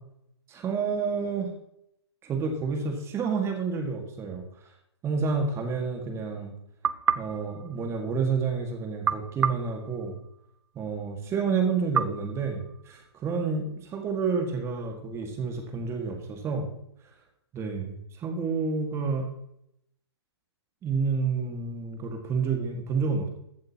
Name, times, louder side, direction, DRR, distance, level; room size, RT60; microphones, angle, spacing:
voice 1, 0.5-1.5 2.2-4.4 5.0-6.5 7.2-10.2 10.8-16.7 17.5-19.2 20.8-23.3, right 5 dB, 20° right, 4 dB, 1.9 m, -29 dB
sound 1, 6.8-8.4 9.0-10.7 11.9-13.3, right 7 dB, 80° right, 0.6 m, -31 dB
14.5 x 8.6 x 2.9 m, 0.78 s
hypercardioid pair, 130°, 15 cm